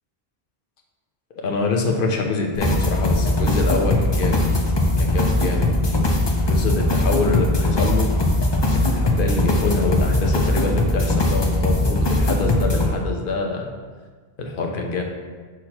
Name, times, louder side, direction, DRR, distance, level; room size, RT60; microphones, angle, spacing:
voice 1, 1.3-4.6 5.0-5.7 6.5-8.1 8.7-13.7 14.4-15.0, left 3 dB, 60° left, 2 dB, 0.9 m, -25 dB
sound 1, 2.5-12.9, left 1 dB, 30° left, 0.6 m, -20 dB
6.3 x 6.0 x 2.9 m, 1.5 s
omnidirectional pair, 1.1 m